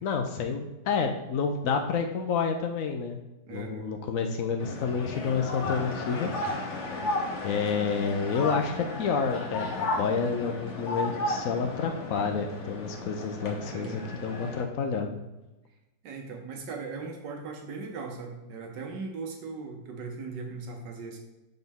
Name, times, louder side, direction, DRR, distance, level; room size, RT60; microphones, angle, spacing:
voice 1, 0.0-3.2 3.5-6.3 7.4-15.2, left 5 dB, 85° left, 4 dB, 0.7 m, -29 dB
voice 2, 3.5-3.9 13.6-14.1 16.0-21.2, right 4 dB, 65° right, 3 dB, 1.6 m, -39 dB
sound 1, 4.6-14.6, left 2 dB, 45° left, 1.1 m, -34 dB
5.9 x 5.3 x 3.5 m, 1.0 s
omnidirectional pair, 2.1 m